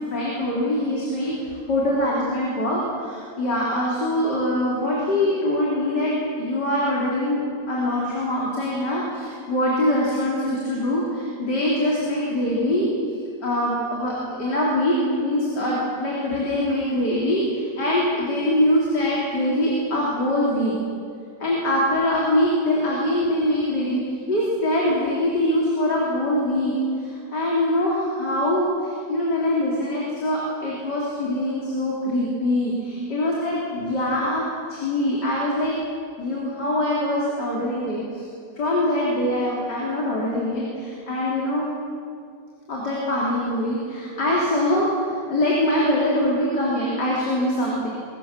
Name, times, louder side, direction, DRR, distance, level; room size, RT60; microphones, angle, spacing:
voice 1, 0.1-1.4 1.7-6.1 6.4-7.4 7.7-12.9 13.4-20.7 21.4-24.0 24.3-34.4 34.7-35.7 36.2-38.3 38.6-41.7 42.7-47.9, left 1 dB, 85° left, -5 dB, 4.2 m, -23 dB
23.5 x 18.0 x 7.4 m, 2.3 s
omnidirectional pair, 1.8 m